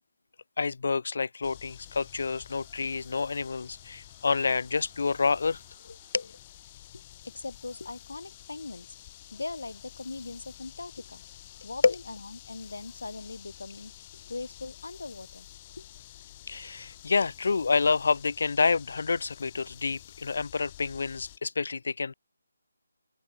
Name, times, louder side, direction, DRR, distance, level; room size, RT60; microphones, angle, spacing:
voice 1, 0.6-5.6 6.1-6.3 11.8-11.9 16.5-22.1, left 4 dB, 60° left, 0.5 m, -28 dB
sound 1, 1.4-21.4, left 14 dB, 25° left, 5.9 m, -50 dB
sound 2, 2.0-12.2, right 6 dB, 45° right, 5.8 m, -66 dB
voice 2, 6.9-8.9 9.3-11.2 11.6-15.5 15.8-15.9, left 3 dB, 80° left, 2.1 m, -40 dB
figure-of-eight pair, 160°, 0 cm